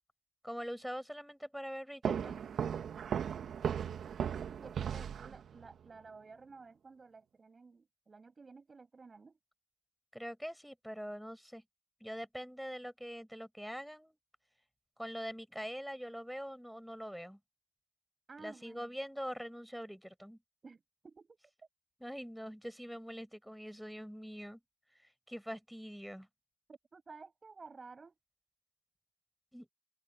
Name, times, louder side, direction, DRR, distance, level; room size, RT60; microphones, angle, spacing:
voice 1, 0.4-2.4 10.1-11.6 12.0-14.2 15.0-17.4 18.4-20.4 22.0-24.6 25.0-26.3 29.5-29.7, equal, ahead, 6.1 m, -43 dB
sound 1, 2.0-5.7, right 8 dB, 70° right, 1.6 m, -36 dB
voice 2, 4.6-9.4 18.3-18.9 20.6-21.4 26.7-28.1, right 4 dB, 40° right, 6.4 m, -54 dB
open air
cardioid pair, 80°, 0 cm